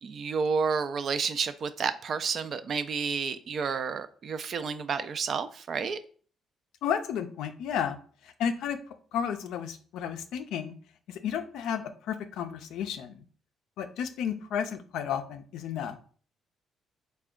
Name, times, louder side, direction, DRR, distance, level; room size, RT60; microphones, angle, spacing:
voice 1, 0.0-6.0, right 5 dB, 55° right, 11 dB, 0.3 m, -30 dB
voice 2, 6.8-8.0 8.4-8.8 9.1-10.7 11.1-13.2 13.8-16.0, left 8 dB, 85° left, 8 dB, 0.4 m, -32 dB
3.4 x 2.2 x 3.6 m, 0.43 s
cardioid pair, 90°, 0 cm